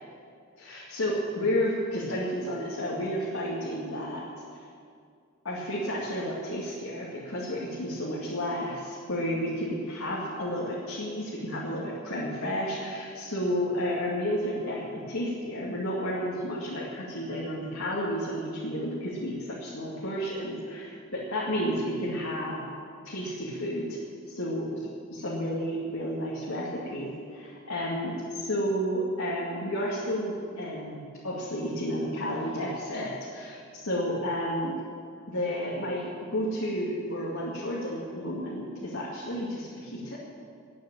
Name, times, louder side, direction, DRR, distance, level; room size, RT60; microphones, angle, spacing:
voice 1, 0.6-4.2 4.5-4.7 5.4-20.8 21.1-22.6 23.0-24.0 24.4-24.7 25.1-34.8 35.3-40.2, equal, 75° left, -6 dB, 2.4 m, -31 dB
12.0 x 9.5 x 8.9 m, 2.2 s
head